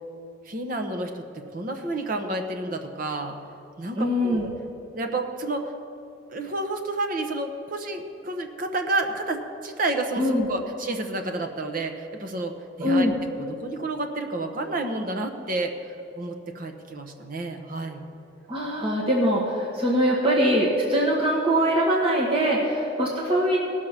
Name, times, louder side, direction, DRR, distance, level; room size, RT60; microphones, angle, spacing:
voice 1, 0.4-3.3 3.8-4.4 4.9-5.7 6.3-13.1 13.4-18.1, right 2 dB, 45° right, 5 dB, 1.0 m, -30 dB
voice 2, 4.0-4.5 10.2-10.5 12.8-13.1 18.5-23.6, equal, 30° right, -4 dB, 1.5 m, -22 dB
17.5 x 6.5 x 5.8 m, 2.9 s
head